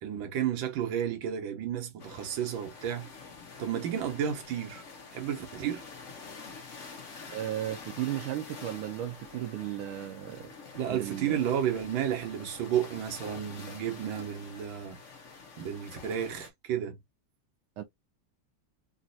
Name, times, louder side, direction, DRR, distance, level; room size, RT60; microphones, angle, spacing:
voice 1, 0.0-3.1 3.6-4.8 5.1-5.8 10.7-15.0 15.6-17.0, right 9 dB, 70° right, 1.7 m, -32 dB
sound 1, 2.0-16.5, left 4 dB, 50° left, 1.0 m, -47 dB
voice 2, 7.3-10.5 10.9-11.4 17.8-17.9, right 13 dB, 85° right, 1.5 m, -35 dB
4.0 x 2.5 x 2.6 m
omnidirectional pair, 2.4 m